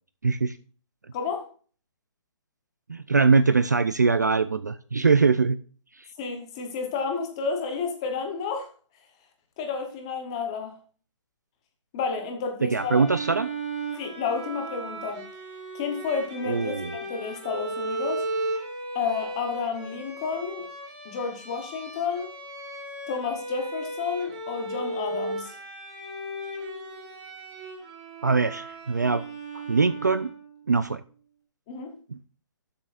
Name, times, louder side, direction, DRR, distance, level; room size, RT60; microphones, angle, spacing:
voice 1, 0.2-0.6 2.9-5.6 12.6-13.5 16.5-16.9 28.2-29.2 29.7-30.3 30.7-31.0 32.1-32.2, right 4 dB, 35° right, 0.4 m, -22 dB
voice 2, 1.1-1.5 6.2-8.7 9.6-10.7 11.9-13.0 14.0-15.2 15.7-18.2 18.9-20.7 21.0-22.3 23.1-25.6 31.7-32.0, left 5 dB, 10° left, 0.8 m, -31 dB
Bowed string instrument, 12.7-30.5, right 2 dB, 15° right, 1.3 m, -36 dB
11.5 x 7.7 x 2.4 m
hypercardioid pair, 180°, 16 cm